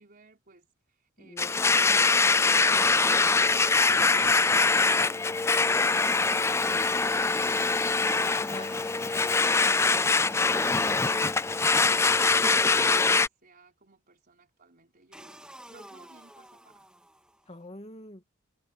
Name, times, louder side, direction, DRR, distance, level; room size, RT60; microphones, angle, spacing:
voice 1, 0.0-6.5 11.8-16.9, right 3 dB, 45° right, 5.0 m, -56 dB
voice 2, 1.2-1.7 8.3-8.8 9.4-9.7 15.2-15.3 17.5-18.2, left 1 dB, 30° left, 2.1 m, -44 dB
Domestic sounds home sounds, 1.4-13.3, left 4 dB, 15° left, 0.3 m, -23 dB
sound 1, 1.6-3.5 7.3-12.5 15.1-17.5, right 1 dB, 5° right, 2.5 m, -50 dB
head